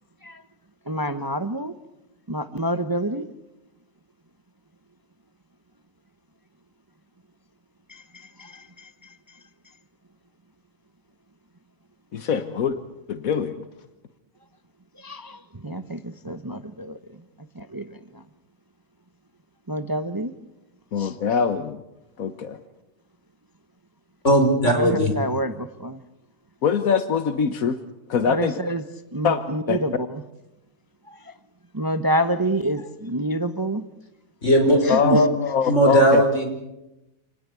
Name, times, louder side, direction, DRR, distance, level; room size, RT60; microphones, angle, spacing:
voice 1, 0.9-1.7 2.3-3.2 7.9-8.9 15.0-17.0 17.6-18.0 19.7-20.3 21.0-21.1 24.6-26.0 28.3-28.8 29.1-30.2 31.1-31.3 31.7-33.8 34.8-35.2, right 1 dB, 20° right, 0.9 m, -28 dB
voice 2, 12.1-12.8 13.1-13.6 20.9-21.8 22.2-22.6 26.6-27.8 28.1-28.5 29.2-29.8 34.9-36.2, left 6 dB, 85° left, 1.6 m, -23 dB
voice 3, 24.2-25.1 34.4-35.2 35.7-36.4, right 1 dB, 60° left, 5.4 m, -18 dB
28.0 x 19.0 x 8.4 m
omnidirectional pair, 1.4 m